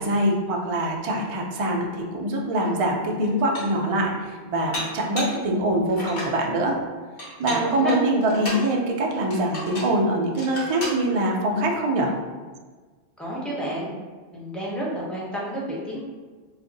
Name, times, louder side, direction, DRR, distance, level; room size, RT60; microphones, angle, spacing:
voice 1, 0.0-6.8 7.4-12.1, right 1 dB, 60° right, 0 dB, 0.3 m, -24 dB
Dishes pots and pans, 2.7-2.8 3.2-3.9 4.7-5.4 5.9-6.4 7.2-8.7 9.3-10.0 10.4-11.0, left 1 dB, 55° left, 1.0 m, -34 dB
voice 2, 7.4-7.9 9.1-9.2 13.2-13.9 14.3-16.0, right 1 dB, ahead, -6 dB, 0.5 m, -31 dB
2.6 x 2.5 x 3.8 m, 1.4 s
omnidirectional pair, 1.2 m